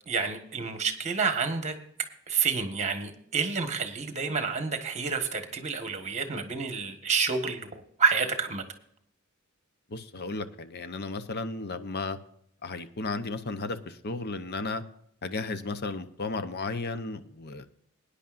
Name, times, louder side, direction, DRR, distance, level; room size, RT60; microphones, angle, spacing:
voice 1, 0.1-8.6, right 5 dB, 35° right, 1.5 m, -29 dB
voice 2, 9.9-12.2 12.6-14.8 15.2-17.7, left 3 dB, 50° left, 0.8 m, -34 dB
20.5 x 10.0 x 2.5 m
head